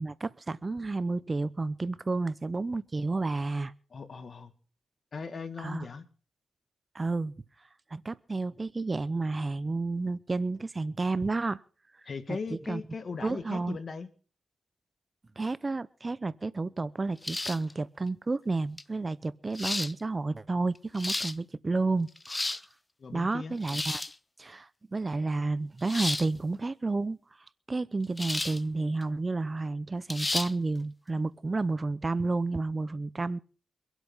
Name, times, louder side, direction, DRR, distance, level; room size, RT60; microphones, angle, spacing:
voice 1, 0.0-3.7 5.6-5.9 6.9-7.3 7.9-11.6 12.3-12.8 13.2-13.8 15.4-22.4 23.1-24.0 24.4-27.2 27.7-33.4, right 3 dB, 35° right, 0.7 m, -31 dB
voice 2, 3.9-4.5 5.1-6.1 12.1-14.1 23.0-23.5, left 5 dB, 55° left, 1.9 m, -38 dB
sound 1, 17.2-17.7 18.8-18.9 19.5-19.9 20.8-21.3 22.1-22.6 23.6-24.1 25.9-26.3 28.2-28.6 29.0-29.1 30.1-30.5, left 2 dB, 25° left, 0.7 m, -32 dB
24.5 x 8.2 x 5.6 m
cardioid pair, 70°, 0 cm